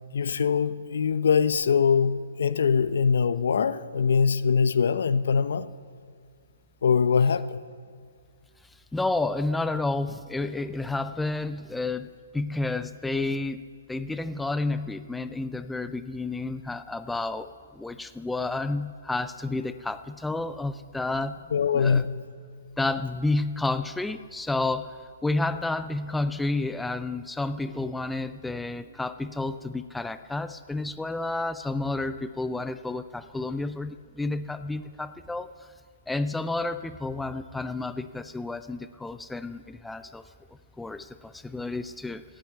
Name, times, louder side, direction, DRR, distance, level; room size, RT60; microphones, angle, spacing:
voice 1, 0.1-5.7 6.8-7.6 21.5-22.2, left 6 dB, 70° left, 0.7 m, -23 dB
voice 2, 8.9-21.4 21.7-22.1 22.8-24.9 25.2-35.7 36.1-40.2 40.8-42.2, left 2 dB, 5° left, 0.4 m, -30 dB
17.5 x 8.9 x 9.2 m
hypercardioid pair, 150°, 0 cm